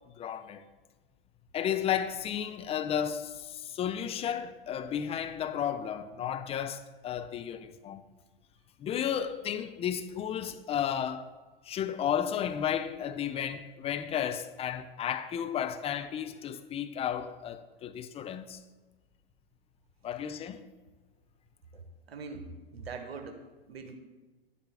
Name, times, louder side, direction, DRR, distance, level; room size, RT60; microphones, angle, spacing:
voice 1, 0.2-0.6 1.5-8.0 8.8-11.3 11.6-18.6 20.0-20.6, left 9 dB, 20° left, 0.5 m, -33 dB
voice 2, 21.7-23.4 23.7-24.0, right 4 dB, 75° right, 1.3 m, -42 dB
11.5 x 11.0 x 3.5 m
hypercardioid pair, 100°, 31 cm